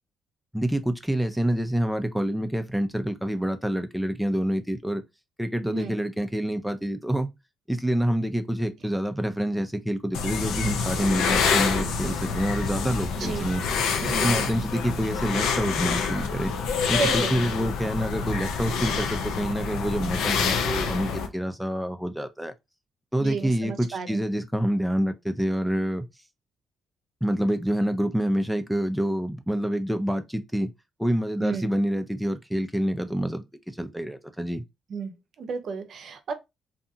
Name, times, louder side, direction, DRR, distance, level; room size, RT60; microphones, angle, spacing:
voice 1, 0.5-5.0 5.4-7.3 7.7-13.6 14.0-16.5 16.9-22.5 23.1-26.1 27.2-30.7 31.0-34.6, equal, ahead, 0.4 m, -27 dB
sound 1, 10.1-21.3, left 5 dB, 90° left, 0.5 m, -27 dB
voice 2, 14.0-14.4 17.0-17.4 23.2-24.2 31.4-31.7 34.9-35.1 35.4-36.3, right 5 dB, 60° right, 0.5 m, -32 dB
2.7 x 2.3 x 2.6 m
cardioid pair, 90°, 0 cm